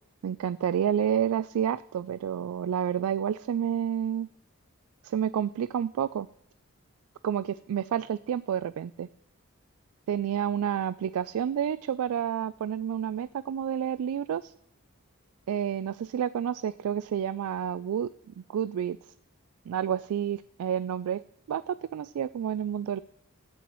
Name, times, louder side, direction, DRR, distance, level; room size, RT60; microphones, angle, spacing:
voice 1, 0.2-4.3 5.0-6.3 7.2-9.1 10.1-14.5 15.5-18.1 18.5-19.0 19.7-21.2 21.5-23.0, right 9 dB, 90° right, 16 dB, 0.3 m, -29 dB
16.0 x 6.9 x 3.1 m, 0.74 s
head